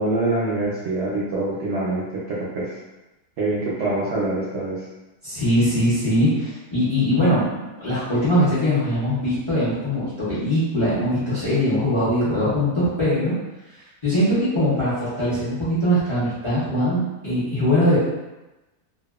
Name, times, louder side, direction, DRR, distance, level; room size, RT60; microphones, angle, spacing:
voice 1, 0.0-2.7 3.4-4.8, right 2 dB, 65° right, -6 dB, 0.7 m, -25 dB
voice 2, 5.2-13.3 14.0-18.0, equal, 40° left, -12 dB, 0.4 m, -21 dB
2.6 x 2.3 x 2.3 m, 1.0 s
omnidirectional pair, 1.7 m